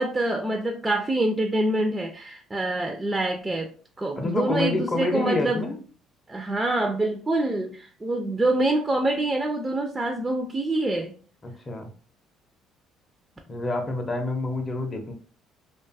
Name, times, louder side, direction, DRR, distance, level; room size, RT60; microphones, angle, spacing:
voice 1, 0.0-3.7 4.0-5.6 6.3-11.1, right 2 dB, 15° right, 3 dB, 0.4 m, -26 dB
voice 2, 4.2-5.8 11.4-11.9 13.5-15.1, left 2 dB, 30° left, 3 dB, 0.6 m, -28 dB
2.5 x 2.3 x 2.5 m, 0.40 s
supercardioid pair, 90°, 0 cm